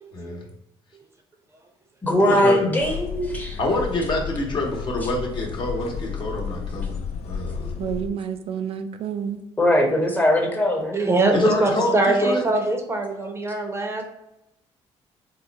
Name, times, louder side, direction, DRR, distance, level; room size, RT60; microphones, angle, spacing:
voice 1, 0.1-0.5 2.3-2.6 3.6-7.0 7.2-7.7 11.3-12.4, left 1 dB, 45° left, 0 dB, 1.0 m, -26 dB
voice 2, 2.0-3.6 9.6-11.0, left 1 dB, 15° left, 1 dB, 0.9 m, -20 dB
sound 1, 2.8-8.1, left 6 dB, 70° left, 0.4 m, -32 dB
voice 3, 7.8-9.4, right 8 dB, 60° right, 8 dB, 0.3 m, -29 dB
voice 4, 10.9-14.0, right 2 dB, 25° right, 3 dB, 0.6 m, -22 dB
3.7 x 2.2 x 3.9 m, 0.87 s
cardioid pair, 100°, 11 cm